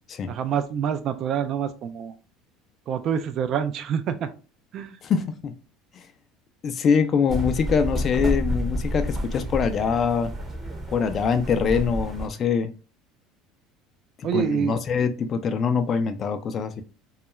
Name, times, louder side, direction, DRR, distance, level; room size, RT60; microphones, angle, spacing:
voice 1, 0.3-2.1 2.9-4.3 4.7-5.0 14.2-14.7, right 8 dB, 50° right, 11 dB, 0.3 m, -26 dB
voice 2, 5.0-5.5 5.9-6.0 6.6-10.3 10.9-12.7 14.2-16.8, left 6 dB, 40° left, 9 dB, 0.4 m, -24 dB
sound 1, 7.3-12.3, equal, 20° right, 0.7 m, -29 dB
2.3 x 2.1 x 2.9 m, 0.34 s
supercardioid pair, 95°, 0 cm